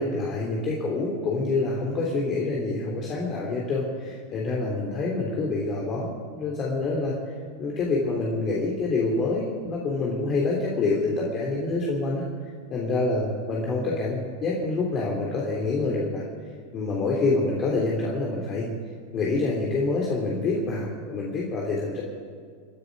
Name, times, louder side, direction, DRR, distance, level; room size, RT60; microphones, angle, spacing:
voice 1, 0.0-7.1 7.6-12.2 12.7-16.2 16.7-18.7 19.1-22.0, left 3 dB, 35° left, -3 dB, 3.2 m, -26 dB
28.0 x 10.0 x 4.9 m, 2.1 s
hypercardioid pair, 95°, 0 cm